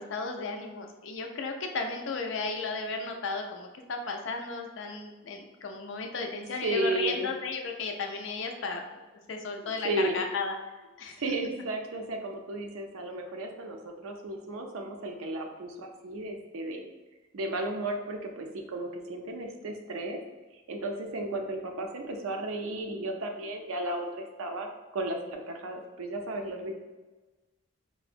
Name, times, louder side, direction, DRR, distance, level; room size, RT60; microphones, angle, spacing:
voice 1, 0.0-8.8 9.3-10.5 11.0-11.2, left 4 dB, 60° left, 3 dB, 0.4 m, -34 dB
voice 2, 6.6-7.3 9.6-10.2 11.2-16.9 17.3-20.2 20.7-24.7 24.9-26.7, right 2 dB, 75° right, 3 dB, 0.5 m, -34 dB
4.5 x 2.1 x 2.5 m, 1.2 s
head